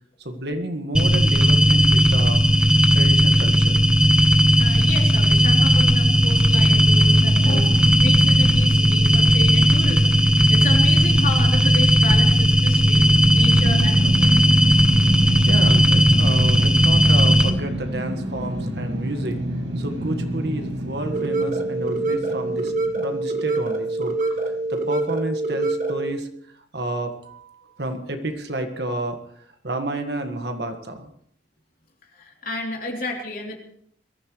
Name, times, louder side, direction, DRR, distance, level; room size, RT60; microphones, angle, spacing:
voice 1, 0.2-2.6 2.9-3.8 15.4-19.4 19.8-24.4 24.7-26.3 26.5-31.1, right 1 dB, 65° right, 6 dB, 1.7 m, -30 dB
sound 1, 0.9-17.5, equal, 5° right, 1.1 m, -16 dB
voice 2, 4.6-13.1 13.3-14.5 32.0-33.6, left 2 dB, 50° left, 0 dB, 3.3 m, -32 dB
sound 2, 6.6-23.8, right 1 dB, 85° right, 1.9 m, -29 dB
sound 3, 21.1-26.1, right 2 dB, 45° right, 1.9 m, -25 dB
22.0 x 14.5 x 3.2 m, 0.64 s
head